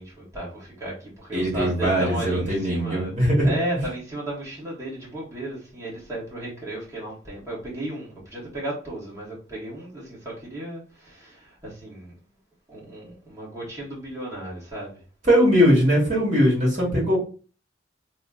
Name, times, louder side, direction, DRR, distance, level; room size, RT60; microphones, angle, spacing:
voice 1, 0.0-3.1 3.4-12.1 12.7-15.0, right 1 dB, 15° right, 1.4 m, -34 dB
voice 2, 1.3-3.5 15.2-17.2, equal, 40° right, 1.7 m, -20 dB
3.1 x 2.1 x 3.6 m
head